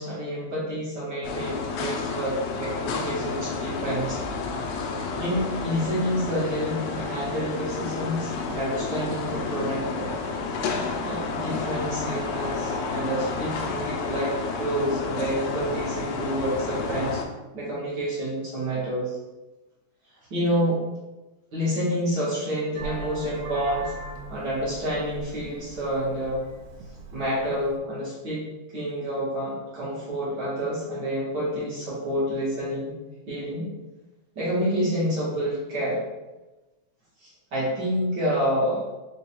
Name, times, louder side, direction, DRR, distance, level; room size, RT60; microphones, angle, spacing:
voice 1, 0.0-4.2 5.2-10.1 11.0-17.2 17.5-19.2 20.3-20.8 21.5-23.9 24.3-26.4 27.1-28.4 28.7-33.0 33.3-33.7 34.3-36.0 37.2-38.8, equal, 55° right, -8 dB, 1.1 m, -28 dB
sound 1, 1.2-17.3, left 4 dB, 80° left, 1.7 m, -30 dB
Vehicle horn car horn honking, 22.8-27.8, right 1 dB, 80° right, 1.8 m, -40 dB
4.6 x 2.3 x 4.3 m, 1.1 s
omnidirectional pair, 3.3 m